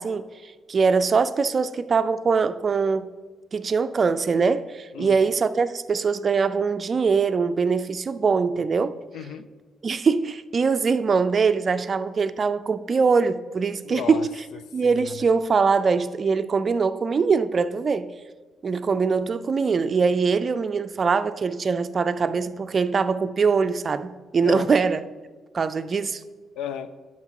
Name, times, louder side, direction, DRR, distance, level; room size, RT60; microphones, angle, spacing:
voice 1, 0.0-3.1 3.5-9.0 9.8-14.3 14.7-18.1 18.6-25.0 25.5-26.2, right 5 dB, 40° right, 0.4 m, -22 dB
voice 2, 9.1-9.5 13.8-15.1 24.4-24.7 26.6-26.9, left 9 dB, 85° left, 0.5 m, -35 dB
9.4 x 5.9 x 4.6 m
cardioid pair, 90°, 0 cm